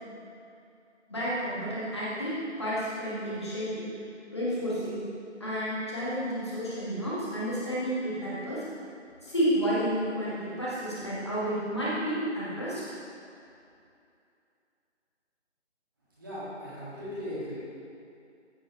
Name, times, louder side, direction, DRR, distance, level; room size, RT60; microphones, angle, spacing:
voice 1, 1.1-3.9 4.3-5.0 5.4-8.7 9.2-12.8, equal, 20° left, -9 dB, 1.9 m, -31 dB
voice 2, 16.2-17.6, equal, 20° right, -11 dB, 2.3 m, -38 dB
14.5 x 5.3 x 4.6 m, 2.5 s
figure-of-eight pair, 170°, 36 cm